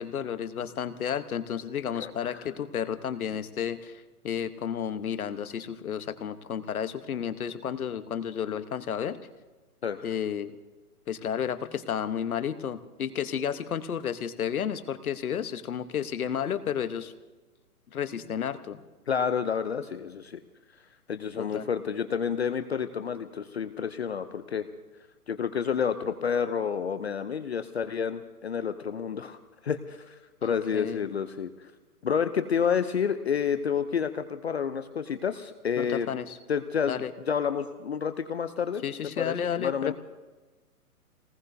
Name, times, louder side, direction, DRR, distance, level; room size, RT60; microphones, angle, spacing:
voice 1, 0.0-9.2 10.0-10.5 11.1-17.1 17.9-18.8 21.4-21.7 30.4-31.0 35.8-36.4 36.9-37.1 38.8-39.9, left 8 dB, 70° left, 10 dB, 1.2 m, -32 dB
voice 2, 2.0-2.4 9.8-10.1 19.1-20.4 21.1-24.7 25.3-29.4 29.6-31.5 32.0-36.1 36.5-37.0 37.3-38.8 39.2-39.9, left 7 dB, 45° left, 10 dB, 0.6 m, -29 dB
27.0 x 19.0 x 2.7 m, 1.3 s
hypercardioid pair, 170°, 45 cm